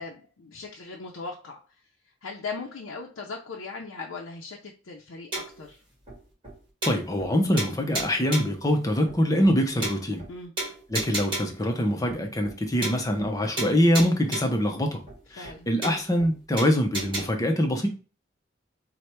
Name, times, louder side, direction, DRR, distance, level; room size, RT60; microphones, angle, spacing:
voice 1, 0.0-1.8 2.2-5.8 10.3-10.5 15.4-15.7, left 4 dB, 85° left, 0.5 m, -39 dB
sound 1, 5.3-5.7 6.1-6.2 6.4-6.5 6.8-7.3 7.6-8.6 9.1-9.2 9.4-9.5 9.8-10.3 10.6-11.6 12.1-12.2 12.4-12.6 12.8-13.3 13.6-14.6 15.1-15.2 15.4-15.5 15.8-16.3 16.6-17.2, right 2 dB, 25° right, 1.5 m, -33 dB
voice 2, 6.8-10.2 10.9-15.0 15.3-17.9, equal, 15° left, 0.5 m, -24 dB
3.2 x 2.1 x 4.3 m
head